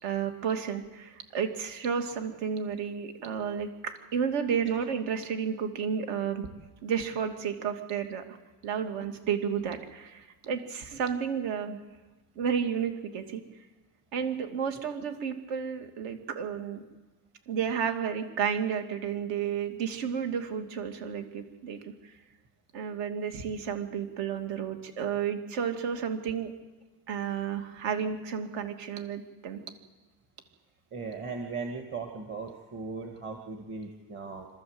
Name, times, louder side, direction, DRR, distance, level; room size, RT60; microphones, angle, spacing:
voice 1, 0.0-6.5 6.8-8.4 8.6-11.8 12.4-13.4 14.1-16.8 17.5-22.1 22.7-26.5 27.1-29.6, right 7 dB, 65° right, 6 dB, 2.8 m, -32 dB
voice 2, 30.9-34.5, right 4 dB, 25° right, 3 dB, 1.7 m, -38 dB
27.0 x 13.5 x 8.0 m, 1.2 s
cardioid pair, 165°, 47 cm